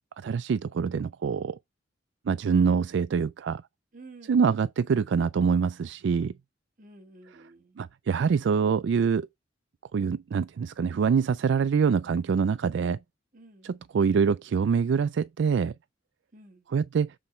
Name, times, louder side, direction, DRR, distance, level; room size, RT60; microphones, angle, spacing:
voice 1, 0.2-1.6 2.3-3.6 4.3-6.3 7.8-9.3 9.9-13.0 13.6-15.7 16.7-17.1, right 6 dB, 65° right, 0.3 m, -25 dB
voice 2, 3.9-4.6 6.8-7.8 13.3-13.8 16.3-16.7, right 2 dB, 45° right, 1.6 m, -51 dB
7.6 x 4.1 x 4.3 m
head